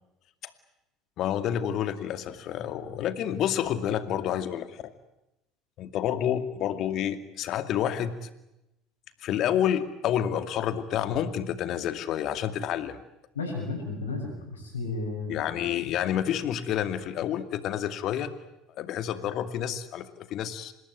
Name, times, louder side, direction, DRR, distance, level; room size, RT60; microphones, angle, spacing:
voice 1, 1.2-4.9 5.8-8.3 9.2-13.0 15.3-18.3 18.8-20.7, left 10 dB, 55° left, 10 dB, 2.3 m, -29 dB
voice 2, 13.4-15.4, left 3 dB, 90° left, -5 dB, 7.4 m, -33 dB
26.5 x 20.5 x 9.4 m, 0.89 s
hypercardioid pair, 70°, 0 cm